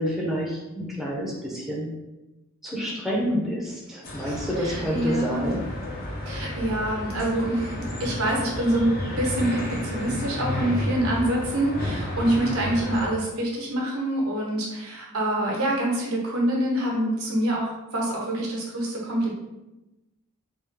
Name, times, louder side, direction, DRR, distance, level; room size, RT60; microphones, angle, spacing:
voice 1, 0.0-1.9 2.6-5.6, equal, ahead, -4 dB, 0.6 m, -28 dB
sound 1, 4.0-13.1, left 1 dB, 45° left, 0.7 m, -32 dB
voice 2, 4.2-5.5 6.2-19.3, right 1 dB, 90° right, -2 dB, 1.0 m, -26 dB
3.5 x 2.4 x 3.3 m, 1.0 s
head